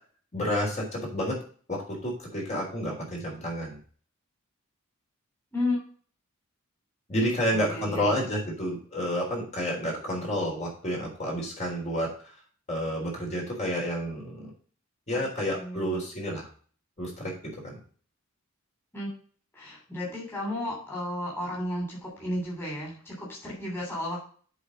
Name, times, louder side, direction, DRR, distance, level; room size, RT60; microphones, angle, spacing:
voice 1, 0.3-1.4 1.7-3.8 7.1-12.1 12.7-14.5 15.1-16.5 17.0-17.8, equal, 35° left, -2 dB, 3.7 m, -30 dB
voice 2, 5.5-5.8 7.5-8.1 15.1-16.0 18.9-19.1 19.5-24.2, left 1 dB, 10° left, -5 dB, 3.3 m, -33 dB
7.9 x 4.9 x 6.3 m, 0.43 s
head